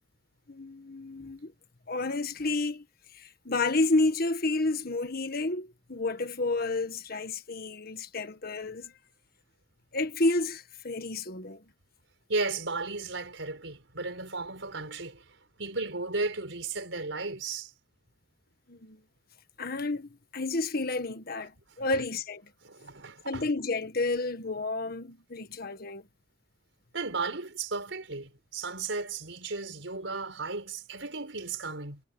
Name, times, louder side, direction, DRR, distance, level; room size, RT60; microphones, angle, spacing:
voice 1, 0.5-1.5 1.9-2.8 3.1-8.9 9.9-11.6 18.7-19.0 19.6-22.4 23.2-26.1, left 2 dB, 55° left, 1.7 m, -30 dB
voice 2, 12.3-15.2 15.6-17.7 21.9-22.0 22.6-23.5 26.9-32.0, right 3 dB, 85° right, 4.9 m, -34 dB
head